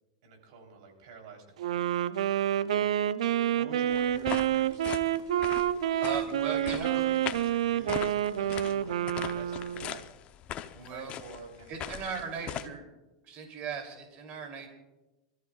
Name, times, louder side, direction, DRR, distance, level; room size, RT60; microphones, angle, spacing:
voice 1, 0.2-1.8 2.6-2.9 3.5-5.1 5.4-5.6 6.1-10.1 10.9-12.1 12.4-12.8, right 4 dB, 65° right, 2 dB, 3.6 m, -47 dB
Wind instrument woodwind instrument, 1.6-9.9, right 11 dB, 90° right, 0.5 m, -28 dB
sound 1, 3.9-12.7, left 11 dB, 35° left, 0.7 m, -40 dB
voice 2, 6.0-7.0 10.7-11.1 11.7-12.8 13.2-14.7, right 6 dB, 40° right, 2 dB, 3.0 m, -38 dB
27.0 x 14.0 x 2.4 m, 1.0 s
supercardioid pair, 125°, 3 cm